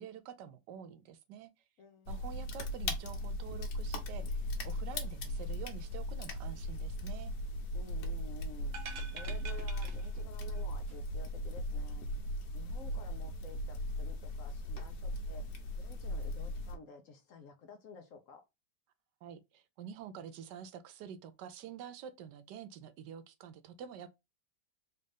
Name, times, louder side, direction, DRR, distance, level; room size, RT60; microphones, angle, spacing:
voice 1, 0.0-1.5 2.1-7.3 19.2-24.1, right 8 dB, 85° right, 1.2 m, -48 dB
voice 2, 1.8-2.2 7.7-8.8 9.1-12.1 12.5-15.4 15.8-18.4, left 5 dB, 60° left, 0.9 m, -52 dB
sound 1, 2.1-16.8, left 1 dB, 80° left, 1.5 m, -38 dB
sound 2, 8.7-10.6 10.9-11.0, right 6 dB, 65° right, 0.6 m, -47 dB
4.2 x 2.5 x 3.4 m
omnidirectional pair, 1.8 m